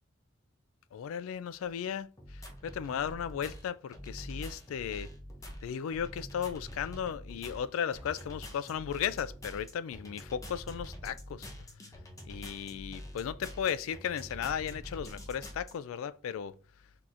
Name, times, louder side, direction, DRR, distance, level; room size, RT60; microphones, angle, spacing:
voice 1, 0.9-5.1 5.6-11.5 12.3-16.5, left 8 dB, 80° left, 0.3 m, -35 dB
sound 1, 2.2-15.7, equal, 15° left, 0.6 m, -46 dB
6.0 x 2.9 x 2.5 m
head